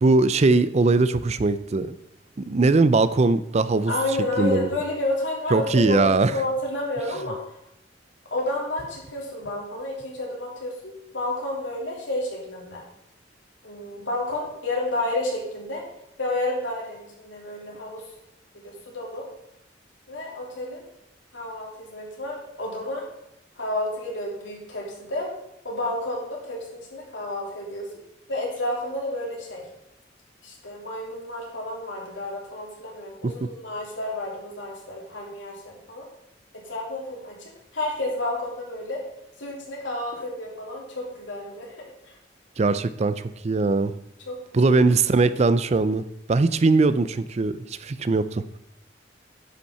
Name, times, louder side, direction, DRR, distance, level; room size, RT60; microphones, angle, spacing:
voice 1, 0.0-2.0 2.4-3.9 4.4-4.7 5.5-6.4 33.2-33.5 42.6-43.9 44.5-48.6, right 3 dB, 35° right, 14 dB, 0.4 m, -21 dB
voice 2, 3.9-7.4 8.3-12.8 13.6-15.8 16.2-18.0 18.5-19.2 20.1-20.8 21.3-23.0 23.6-25.3 25.6-27.9 28.3-29.6 30.4-36.0 36.7-37.3 37.7-39.0 39.4-42.1 44.3-44.4 44.7-44.8, left 1 dB, 85° left, -2 dB, 3.2 m, -30 dB
10.0 x 5.6 x 5.5 m, 0.83 s
head